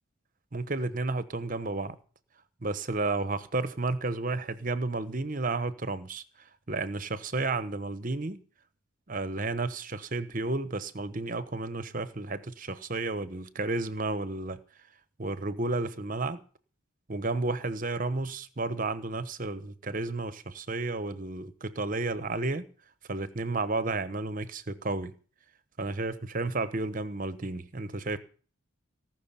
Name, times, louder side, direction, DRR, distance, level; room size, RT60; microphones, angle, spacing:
voice 1, 0.5-1.9 2.6-6.2 6.7-8.4 9.1-14.6 15.2-16.4 17.1-22.7 23.1-25.1 25.8-28.2, right 3 dB, 40° right, 1.0 m, -32 dB
18.5 x 6.3 x 8.9 m
head